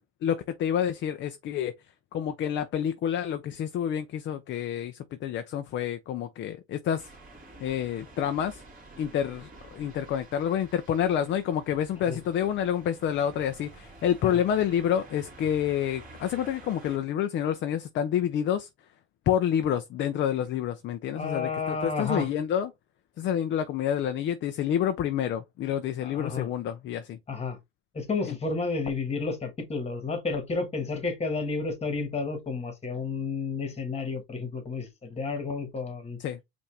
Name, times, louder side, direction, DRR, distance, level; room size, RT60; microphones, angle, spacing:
voice 1, 0.2-1.7 2.1-7.1 7.6-8.6 9.0-18.7 19.3-22.7 23.2-27.2 28.3-28.4 36.2-36.4, left 9 dB, 35° left, 0.4 m, -28 dB
sound 1, 7.0-17.0, right 2 dB, 25° right, 2.1 m, -50 dB
voice 2, 21.1-22.3 26.0-26.5 27.3-27.6 27.9-36.2, left 4 dB, 20° left, 1.5 m, -31 dB
5.5 x 2.6 x 3.2 m
cardioid pair, 125°, 33 cm